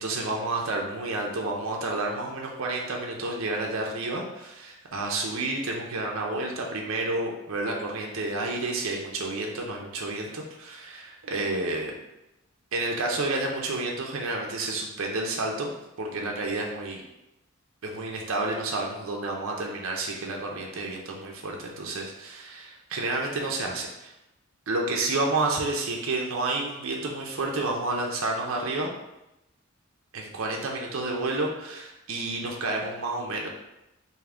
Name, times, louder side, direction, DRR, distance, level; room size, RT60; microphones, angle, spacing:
voice 1, 0.0-11.9 12.7-15.7 16.0-17.0 17.8-24.1 24.7-28.9 30.1-33.5, right 2 dB, 65° right, 0 dB, 0.6 m, -30 dB
3.4 x 2.7 x 3.7 m, 0.92 s
head